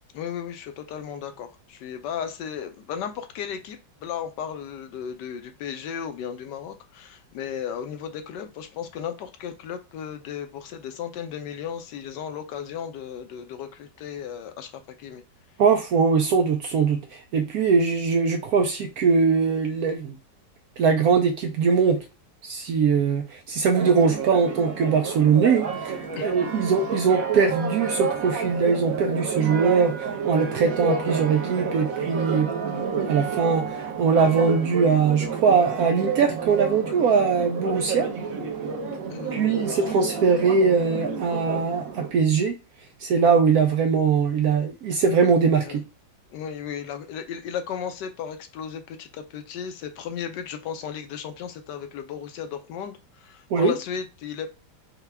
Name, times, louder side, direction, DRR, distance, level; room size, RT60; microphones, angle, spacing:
voice 1, 0.1-15.2 26.2-26.7 39.1-39.9 45.6-45.8 46.3-54.5, left 8 dB, 70° left, 1.1 m, -35 dB
voice 2, 15.6-20.2 20.8-22.0 22.4-32.5 33.1-38.1 39.3-42.6 43.0-45.8 53.5-53.7, right 5 dB, 85° right, 0.8 m, -21 dB
Church bell, 23.8-42.1, right 5 dB, 55° right, 1.0 m, -30 dB
5.7 x 2.2 x 3.4 m
omnidirectional pair, 2.2 m